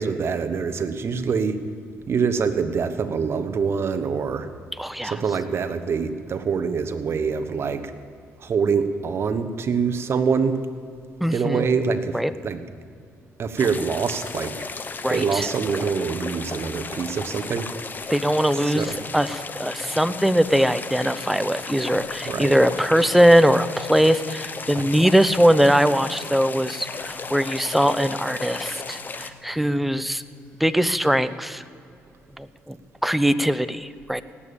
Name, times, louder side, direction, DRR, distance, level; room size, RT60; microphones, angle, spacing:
voice 1, 0.0-1.6 2.1-4.5 5.0-7.9 8.4-10.6 11.3-12.6 13.4-14.6 15.1-17.7 18.5-19.0 22.3-22.5 24.8-24.9, right 5 dB, 50° right, 10 dB, 1.2 m, -25 dB
voice 2, 4.8-5.1 11.2-11.6 12.1-12.3 15.0-15.5 18.1-30.2 30.6-31.6 32.4-32.8 33.0-34.2, equal, ahead, 12 dB, 0.7 m, -21 dB
sound 1, 13.6-29.3, left 4 dB, 35° left, 1.0 m, -34 dB
sound 2, 18.2-30.8, left 2 dB, 60° left, 3.3 m, -51 dB
18.5 x 8.6 x 7.1 m, 2.3 s
cardioid pair, 75°, 5 cm